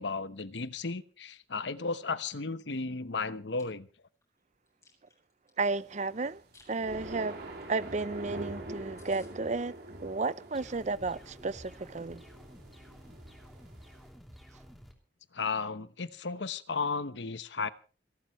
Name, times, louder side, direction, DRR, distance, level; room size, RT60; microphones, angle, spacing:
voice 1, 0.0-3.9 15.3-17.7, left 4 dB, 70° left, 1.0 m, -34 dB
Chewing mastication, 3.3-3.6 4.1-5.6 6.2-6.7 7.0-7.2 7.6-7.7 7.9-8.0 8.4-8.5 8.7-8.8 9.0-9.3, left 3 dB, 15° left, 7.5 m, -61 dB
voice 2, 5.6-6.4 6.7-7.4 7.7-9.7 10.0-12.2, right 3 dB, 40° right, 0.6 m, -33 dB
sound 1, 6.1-14.1, right 2 dB, 60° right, 4.3 m, -45 dB
sound 2, 10.5-14.9, equal, ahead, 3.1 m, -52 dB
27.5 x 12.5 x 3.1 m
head